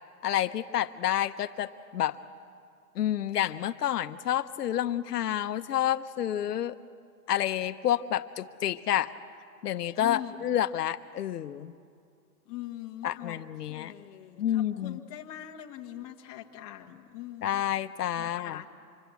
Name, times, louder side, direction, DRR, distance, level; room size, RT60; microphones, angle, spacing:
voice 1, 0.2-2.2 3.0-6.8 7.3-9.1 9.6-11.7 13.0-13.9 14.4-15.0 17.4-18.6, left 11 dB, 75° left, 9 dB, 0.9 m, -29 dB
voice 2, 10.0-10.6 12.4-13.4 13.7-17.7 18.1-18.7, left 13 dB, 25° left, 1 dB, 1.2 m, -42 dB
26.0 x 22.5 x 8.2 m, 2.3 s
hypercardioid pair, 170°, 48 cm